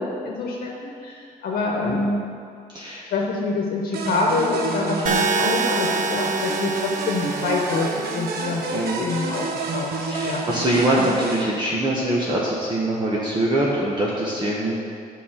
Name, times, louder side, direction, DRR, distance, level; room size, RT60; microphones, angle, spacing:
voice 1, 0.0-2.2 3.1-7.9 8.1-8.6 9.0-9.5 9.7-10.4, left 3 dB, 70° left, -1 dB, 1.1 m, -26 dB
voice 2, 2.7-3.0 8.7-9.0 10.1-14.8, right 1 dB, 30° right, -5 dB, 1.4 m, -23 dB
sound 1, 3.9-11.4, right 4 dB, 90° right, 1.0 m, -29 dB
sound 2, 5.1-9.1, right 3 dB, 55° right, 1.0 m, -27 dB
9.5 x 5.5 x 7.4 m, 2.3 s
cardioid pair, 135°, 16 cm